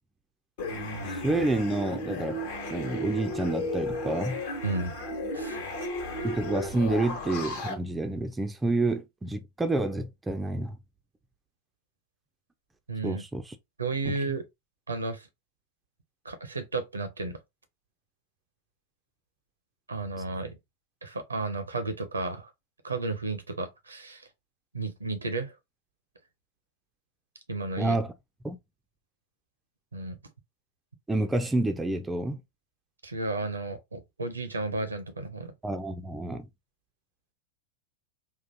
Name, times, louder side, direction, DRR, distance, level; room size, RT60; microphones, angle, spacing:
sound 1, 0.6-7.7, left 1 dB, 55° left, 1.2 m, -34 dB
voice 1, 1.1-2.4 2.7-4.4 6.2-10.8 13.0-13.5 14.1-14.2 20.2-20.3 27.8-28.1 28.4-28.6 31.1-32.4 35.6-36.5, right 2 dB, 10° right, 0.5 m, -29 dB
voice 2, 4.6-4.9 5.3-5.6 12.9-13.2 13.8-14.4 14.9-15.3 16.2-17.4 19.9-20.6 21.0-22.5 22.8-24.2 24.7-25.5 27.5-28.0 29.9-30.2 33.0-35.5, right 3 dB, 75° right, 0.7 m, -33 dB
3.6 x 2.5 x 2.7 m
figure-of-eight pair, 90°, 0 cm